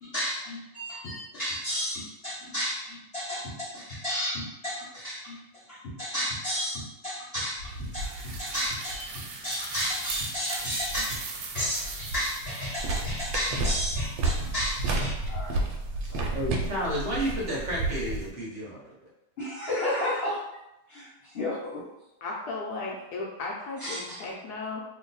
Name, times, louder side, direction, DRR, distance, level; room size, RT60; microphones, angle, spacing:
voice 1, 0.0-11.2 11.5-15.6 16.0-16.3 19.4-20.4 20.9-21.8 23.8-24.2, equal, 45° left, -8 dB, 0.9 m, -32 dB
sound 1, 7.6-15.0, right 2 dB, 70° right, 0.9 m, -38 dB
sound 2, 12.8-18.3, right 2 dB, 85° right, 1.3 m, -30 dB
voice 2, 16.3-18.8, equal, 45° right, -5 dB, 1.1 m, -31 dB
voice 3, 22.2-24.8, left 3 dB, 70° left, -3 dB, 1.0 m, -35 dB
3.0 x 2.2 x 4.0 m, 0.91 s
omnidirectional pair, 2.0 m